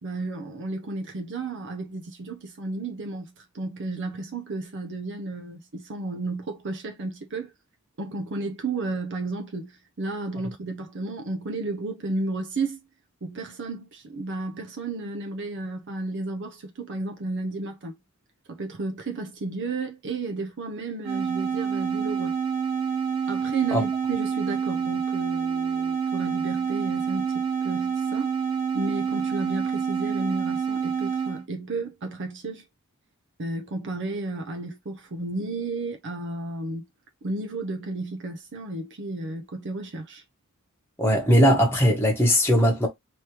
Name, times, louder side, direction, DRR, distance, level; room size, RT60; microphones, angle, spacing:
voice 1, 0.0-7.5 8.0-12.8 13.2-18.0 18.5-22.4 23.3-28.3 28.7-32.7 33.4-36.8 37.2-40.2, right 2 dB, 55° right, 0.6 m, -33 dB
sound 1, 21.0-31.4, right 7 dB, 25° right, 1.5 m, -27 dB
voice 2, 41.0-42.9, equal, 10° left, 1.0 m, -19 dB
3.3 x 3.1 x 2.9 m
head